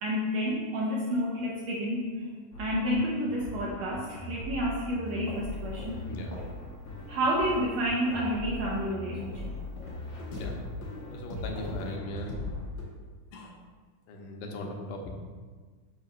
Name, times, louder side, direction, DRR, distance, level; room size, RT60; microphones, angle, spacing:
voice 1, 0.0-2.3 2.6-6.0 7.1-9.5, equal, 70° right, -3 dB, 1.7 m, -30 dB
sound 1, 2.5-12.8, left 2 dB, 60° left, 1.2 m, -40 dB
sound 2, 5.1-6.6 6.9-7.2 7.4-8.3 8.6-8.9 9.2-11.9, left 1 dB, 40° left, 1.2 m, -44 dB
voice 2, 11.1-12.3 13.3-13.6 14.1-15.1, left 1 dB, 80° left, 2 dB, 2.2 m, -38 dB
5.6 x 3.2 x 5.2 m, 1.5 s
omnidirectional pair, 3.7 m